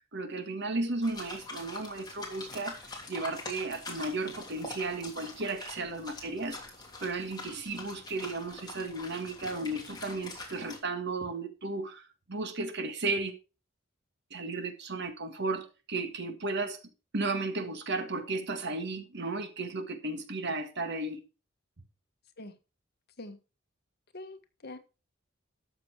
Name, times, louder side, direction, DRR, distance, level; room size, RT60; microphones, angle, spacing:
voice 1, 0.1-2.8 3.1-6.6 7.0-13.3 14.3-16.8 17.1-21.2, right 3 dB, 60° right, 1.7 m, -34 dB
sound 1, 1.0-10.8, left 3 dB, 20° left, 3.1 m, -44 dB
voice 2, 24.1-24.8, left 2 dB, 50° left, 1.4 m, -44 dB
13.0 x 6.7 x 4.6 m
head